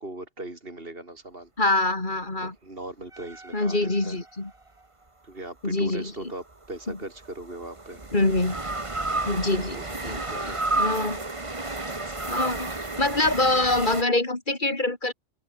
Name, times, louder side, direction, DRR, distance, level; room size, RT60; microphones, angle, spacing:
voice 1, 0.0-1.5 2.4-4.2 5.2-8.0 9.7-9.9 10.3-10.7, right 2 dB, 50° right, 4.7 m, -39 dB
voice 2, 1.6-2.5 3.5-4.5 5.6-6.3 6.9-7.0 8.1-8.6 9.3-11.2 12.3-12.7 13.0-15.1, left 2 dB, 40° left, 3.4 m, -25 dB
sound 1, 3.1-4.6 6.5-14.0, right 2 dB, 25° right, 1.9 m, -32 dB
open air
omnidirectional pair, 1.3 m